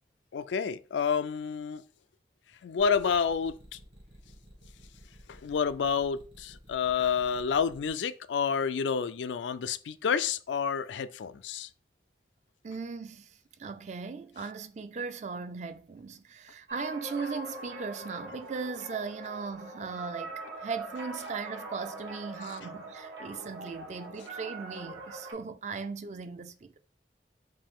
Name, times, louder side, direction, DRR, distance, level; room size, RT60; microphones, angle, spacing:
voice 1, 0.3-1.8 2.6-3.6 5.3-11.7, left 6 dB, 85° left, 0.4 m, -29 dB
sound 1, 2.8-7.9, equal, 65° right, 2.0 m, -53 dB
voice 2, 12.6-26.8, right 5 dB, 40° right, 0.4 m, -38 dB
sound 2, 16.7-25.3, right 2 dB, 85° right, 1.3 m, -43 dB
5.2 x 2.6 x 3.6 m
head